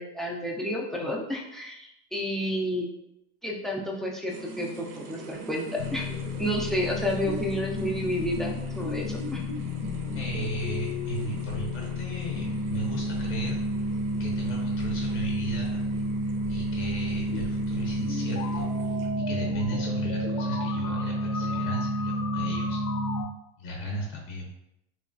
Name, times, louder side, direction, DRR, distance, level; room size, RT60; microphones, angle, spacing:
voice 1, 0.0-2.9 3.4-6.1 6.4-9.4, equal, ahead, -2 dB, 0.4 m, -30 dB
sound 1, 4.3-19.4, right 3 dB, 65° right, 0.6 m, -46 dB
sound 2, 5.8-23.2, left 1 dB, 80° left, 0.7 m, -30 dB
voice 2, 10.2-13.6 14.2-15.8 16.5-18.9 19.3-22.8 23.6-24.5, right 1 dB, 40° left, -1 dB, 0.6 m, -36 dB
3.0 x 2.3 x 2.5 m, 0.85 s
supercardioid pair, 105°, 32 cm